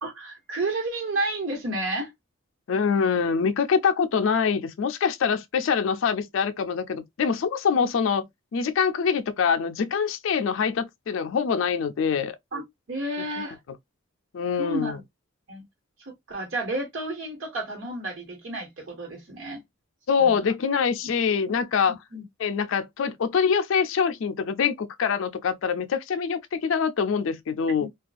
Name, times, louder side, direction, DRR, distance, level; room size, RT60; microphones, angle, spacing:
voice 1, 0.0-2.1 12.5-12.6 12.9-13.6 14.6-15.0 15.5-15.6 16.0-19.6 20.2-20.3 22.1-22.2 27.8-27.9, right 2 dB, 65° right, 1.2 m, -31 dB
voice 2, 2.7-12.3 14.3-15.0 20.1-22.0 22.4-27.9, left 6 dB, 65° left, 0.4 m, -24 dB
2.3 x 2.3 x 2.4 m
head